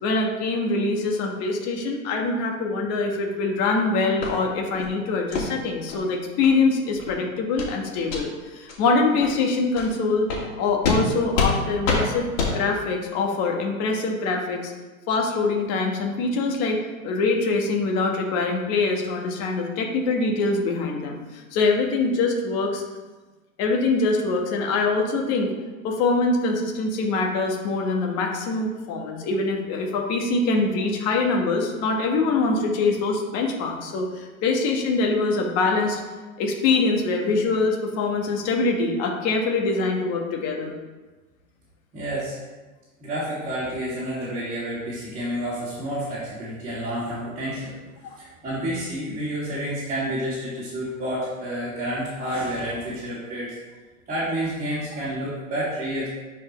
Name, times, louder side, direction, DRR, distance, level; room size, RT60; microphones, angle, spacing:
voice 1, 0.0-10.3 10.6-12.3 12.5-14.7 15.1-16.8 17.0-22.8 23.6-25.5 25.8-36.0 36.4-40.7 48.1-48.2, left 3 dB, 35° left, 1 dB, 1.5 m, -24 dB
sound 1, 4.2-4.3 4.7-4.9 5.3-5.5 5.9-6.0 6.4-6.5 6.9-7.1 7.6-7.7 8.0-8.2 8.7-8.8 9.2-9.3 9.7-9.9 10.3-10.4 10.8-11.0 11.3-11.5 11.8-12.0 12.4-12.5, left 4 dB, 60° left, 2.5 m, -25 dB
voice 2, 41.9-42.4 43.0-47.8 48.2-53.5 54.1-56.1, right 1 dB, 20° right, -11 dB, 2.5 m, -29 dB
10.5 x 4.8 x 3.2 m, 1.2 s
hypercardioid pair, 130°, 42 cm